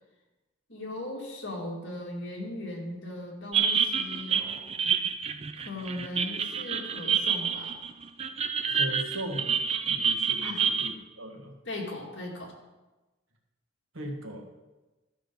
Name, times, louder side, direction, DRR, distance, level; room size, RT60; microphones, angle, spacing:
voice 1, 0.7-4.7 5.6-7.8 10.4-10.6 11.7-12.5, left 1 dB, 60° left, -1 dB, 2.2 m, -38 dB
sound 1, 3.5-10.9, right 7 dB, 30° right, 0.4 m, -28 dB
voice 2, 8.7-9.5 9.9-11.6 13.9-14.5, right 1 dB, 80° right, 1 dB, 1.6 m, -38 dB
12.5 x 6.1 x 5.3 m, 1.1 s
head